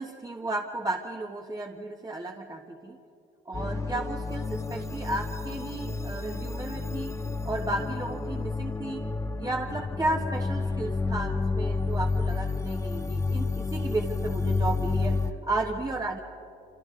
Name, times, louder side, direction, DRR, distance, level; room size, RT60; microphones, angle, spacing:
voice 1, 0.0-3.0 3.5-7.1 7.4-9.0 9.4-16.2, right 2 dB, 20° right, 1 dB, 1.4 m, -33 dB
sound 1, 3.5-15.3, left 3 dB, 15° left, 0.8 m, -30 dB
27.5 x 27.0 x 3.8 m, 2.6 s
cardioid pair, 90°, 20 cm